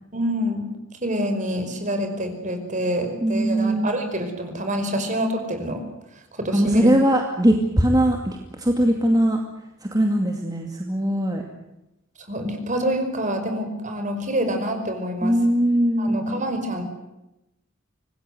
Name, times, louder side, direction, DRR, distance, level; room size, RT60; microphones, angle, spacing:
voice 1, 0.1-0.7 1.0-5.8 6.4-6.9 12.2-15.4 16.0-16.8, equal, 40° right, 6 dB, 5.1 m, -26 dB
voice 2, 3.2-3.9 6.5-9.4 9.8-11.4 15.2-16.4, right 1 dB, 20° right, 2 dB, 2.3 m, -20 dB
26.0 x 19.5 x 8.0 m, 0.93 s
head